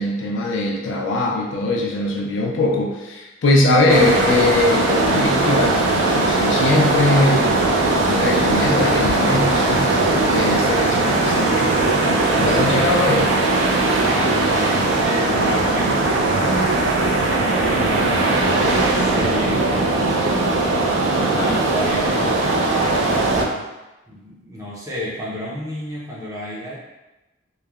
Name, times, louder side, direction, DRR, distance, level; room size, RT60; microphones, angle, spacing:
voice 1, 0.0-9.9 10.2-13.3 21.2-21.6, left 2 dB, 70° left, 0 dB, 0.4 m, -21 dB
sound 1, 3.9-23.4, right 2 dB, 75° right, 0.4 m, -19 dB
voice 2, 14.0-23.7 24.1-26.8, equal, 15° right, -7 dB, 0.5 m, -30 dB
3.1 x 2.1 x 2.3 m, 1.0 s
head